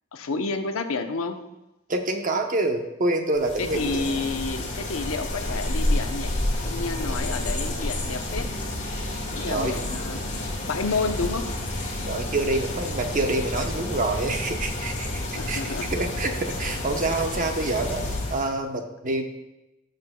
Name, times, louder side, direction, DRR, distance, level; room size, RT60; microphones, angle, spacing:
voice 1, 0.1-1.4 3.6-6.3 6.6-8.5 9.4-10.3 10.7-11.5 15.3-15.9, left 4 dB, 85° left, 7 dB, 0.7 m, -30 dB
voice 2, 1.9-4.2 9.3-9.8 12.1-18.0 18.3-19.2, right 2 dB, 40° right, 4 dB, 0.9 m, -27 dB
sound 1, 3.4-18.5, left 1 dB, 35° left, 1.7 m, -30 dB
16.5 x 6.6 x 2.2 m, 0.95 s
head